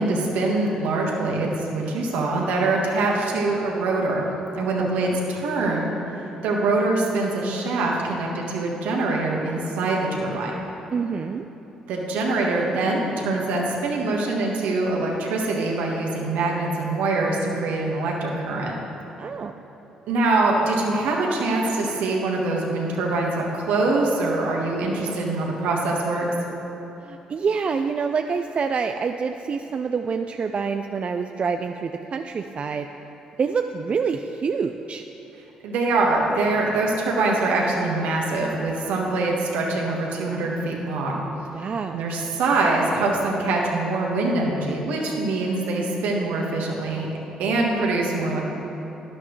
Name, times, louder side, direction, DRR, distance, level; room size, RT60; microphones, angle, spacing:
voice 1, 0.0-4.3 4.5-5.9 6.4-10.6 11.9-18.7 20.1-26.3 35.6-41.2 41.9-47.1 47.4-48.4, right 2 dB, 75° right, -1 dB, 1.5 m, -24 dB
voice 2, 4.8-5.2 10.9-11.4 19.2-19.5 27.0-32.9 33.4-35.0 41.5-42.0, right 5 dB, 45° right, 6 dB, 0.4 m, -27 dB
11.0 x 11.0 x 3.2 m, 3.0 s
hypercardioid pair, 50°, 3 cm